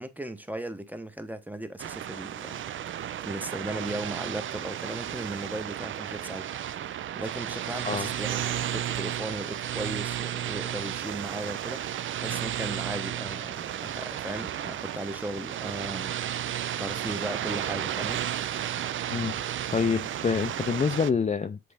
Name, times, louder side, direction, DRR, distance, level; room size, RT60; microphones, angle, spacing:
voice 1, 0.0-2.6 2.9-6.5 7.2-16.2 16.8-18.2, right 1 dB, 5° right, 0.8 m, -37 dB
sound 1, 1.8-21.1, right 11 dB, 45° right, 0.4 m, -33 dB
voice 2, 19.1-21.6, left 5 dB, 25° left, 0.5 m, -27 dB
7.7 x 3.7 x 3.4 m
cardioid pair, 90°, 30 cm